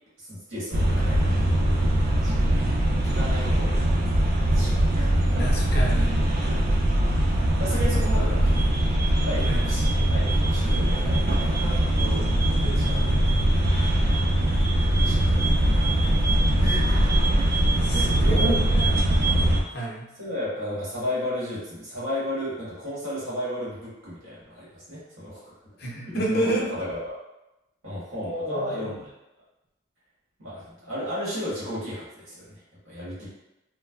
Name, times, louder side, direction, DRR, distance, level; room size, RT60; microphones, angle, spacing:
voice 1, 0.2-1.3 1.9-2.4 3.1-3.9 4.5-5.1 5.8-5.9 6.5-6.6 7.6-8.7 9.1-13.1 14.0-14.4 14.9-15.6 16.6-18.6 20.2-25.5 26.1-27.2 27.8-29.1 30.4-33.3, equal, 85° right, -9 dB, 1.4 m, -34 dB
sound 1, 0.7-19.6, right 1 dB, 45° right, 0.3 m, -22 dB
voice 2, 5.4-6.3 9.4-9.6 12.6-13.5 17.8-20.1 25.8-26.8 28.2-29.0, right 1 dB, 50° left, -4 dB, 0.6 m, -31 dB
3.0 x 2.1 x 2.3 m, 0.94 s
head